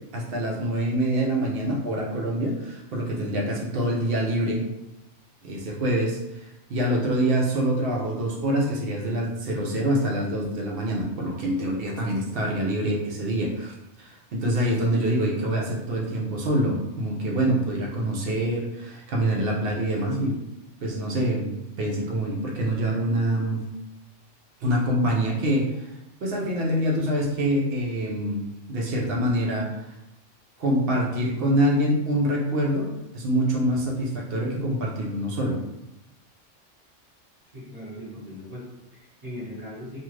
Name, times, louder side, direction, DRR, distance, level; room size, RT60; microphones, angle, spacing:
voice 1, 0.1-4.7 5.4-6.4 6.7-20.4 20.8-23.6 24.6-25.9 26.2-29.7 30.6-35.6, right 1 dB, 60° right, -1 dB, 0.7 m, -25 dB
voice 2, 37.5-40.0, equal, 30° right, -12 dB, 1.2 m, -39 dB
2.5 x 2.4 x 3.1 m, 0.90 s
omnidirectional pair, 1.3 m